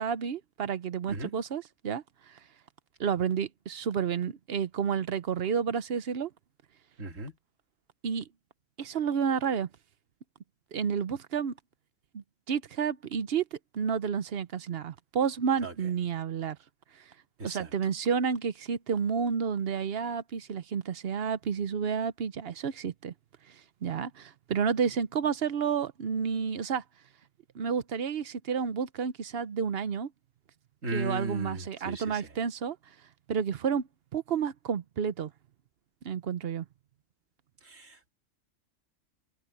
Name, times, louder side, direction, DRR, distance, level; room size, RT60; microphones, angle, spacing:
voice 1, 0.0-2.4 3.0-6.3 8.0-8.3 8.8-9.7 10.7-11.5 12.1-16.6 17.4-23.1 23.5-23.6 23.8-26.8 27.5-30.1 30.9-32.8 33.3-35.3 36.0-36.6, right 7 dB, 55° right, 1.0 m, -30 dB
voice 2, 7.0-7.3 15.6-15.7 17.4-17.6 30.8-32.0 37.7-38.1, right 2 dB, 90° right, 3.1 m, -36 dB
open air
omnidirectional pair, 1.3 m